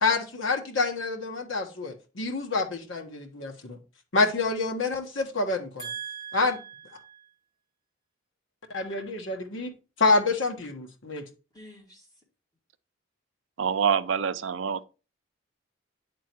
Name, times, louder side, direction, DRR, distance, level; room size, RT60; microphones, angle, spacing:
voice 1, 0.0-3.8 4.1-5.8 6.3-6.6 8.7-11.2, left 3 dB, 80° left, 1.4 m, -27 dB
voice 2, 5.8-7.3 11.5-12.1, right 7 dB, 20° left, 2.3 m, -41 dB
voice 3, 13.6-14.8, right 7 dB, 75° right, 0.5 m, -26 dB
9.4 x 3.7 x 4.5 m
head